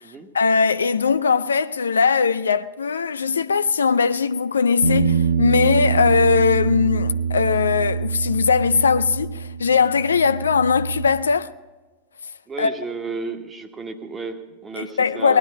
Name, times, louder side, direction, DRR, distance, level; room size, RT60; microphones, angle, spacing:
voice 1, 0.3-11.5 12.6-12.8 14.8-15.4, left 5 dB, 70° left, 0.4 m, -20 dB
Bass guitar, 4.8-11.1, right 6 dB, 75° right, 0.9 m, -24 dB
voice 2, 12.5-15.4, right 4 dB, 20° right, 1.3 m, -33 dB
19.0 x 12.0 x 5.4 m
figure-of-eight pair, 90°, 0 cm